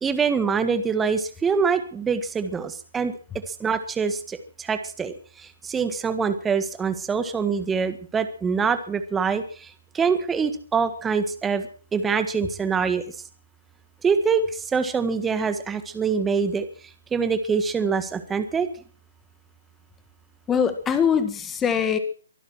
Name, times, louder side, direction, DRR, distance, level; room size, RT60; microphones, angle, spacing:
voice 1, 0.0-3.1 3.6-5.1 5.6-9.7 9.9-11.6 11.9-13.0 14.0-16.7 17.1-18.7, right 5 dB, 10° right, 10 dB, 1.6 m, -24 dB
voice 2, 20.5-22.0, left 7 dB, 15° left, 11 dB, 1.8 m, -22 dB
23.5 x 12.0 x 4.6 m, 0.42 s
figure-of-eight pair, 135°, 0 cm